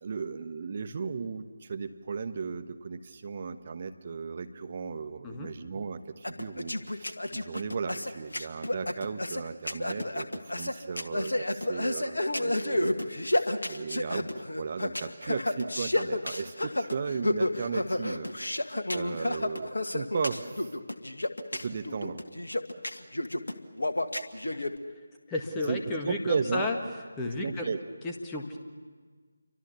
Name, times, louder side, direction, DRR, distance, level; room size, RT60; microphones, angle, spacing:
voice 1, 0.0-12.9 13.3-14.3 14.6-18.3 18.9-20.7 21.5-22.2 25.7-26.7 27.2-27.8, right 5 dB, 35° right, 8 dB, 1.1 m, -35 dB
sound 1, 6.2-24.7, left 1 dB, 65° left, 1.6 m, -31 dB
voice 2, 25.3-26.8 27.2-27.7 28.0-28.6, left 2 dB, 10° left, 1 dB, 1.8 m, -32 dB
29.0 x 24.5 x 6.9 m, 1.5 s
figure-of-eight pair, 155°, 0 cm